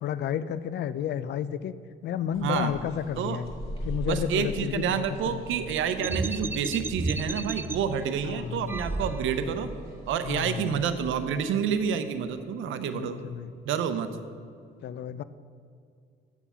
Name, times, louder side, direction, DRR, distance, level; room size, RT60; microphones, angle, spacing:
voice 1, 0.0-1.7 2.0-3.5 3.8-5.6 8.2-8.7 10.2-10.7 12.9-13.5 14.8-15.2, left 9 dB, 60° left, 15 dB, 0.4 m, -32 dB
sound 1, 2.3-11.4, right 1 dB, 30° left, 2.0 m, -41 dB
voice 2, 2.4-2.7 3.2-3.4 4.1-9.7 10.1-13.2 13.6-14.1, right 7 dB, 80° right, 9 dB, 0.7 m, -28 dB
sound 2, 6.0-7.8 8.6-9.6, right 2 dB, 10° right, 0.3 m, -32 dB
7.1 x 7.1 x 5.6 m, 2.3 s
cardioid pair, 90°, 20 cm